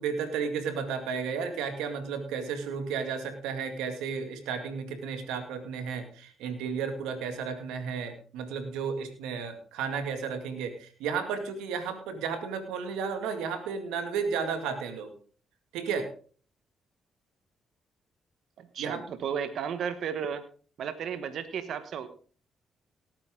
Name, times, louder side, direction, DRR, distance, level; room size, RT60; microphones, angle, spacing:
voice 1, 0.0-15.1 15.7-16.1 18.8-19.0, right 6 dB, 90° right, 8 dB, 2.2 m, -33 dB
voice 2, 18.6-20.4 20.8-22.1, right 7 dB, 70° right, 11 dB, 1.3 m, -34 dB
18.0 x 8.9 x 3.8 m, 0.40 s
supercardioid pair, 60°, 0 cm